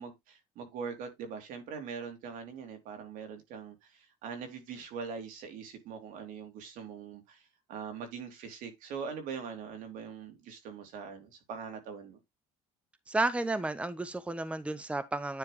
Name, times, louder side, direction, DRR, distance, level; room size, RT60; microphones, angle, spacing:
voice 1, 0.0-7.4 7.7-12.2, right 6 dB, 75° right, 2.8 m, -42 dB
voice 2, 13.1-15.4, right 2 dB, 10° right, 0.8 m, -32 dB
9.6 x 3.5 x 4.8 m
cardioid pair, 100°, 14 cm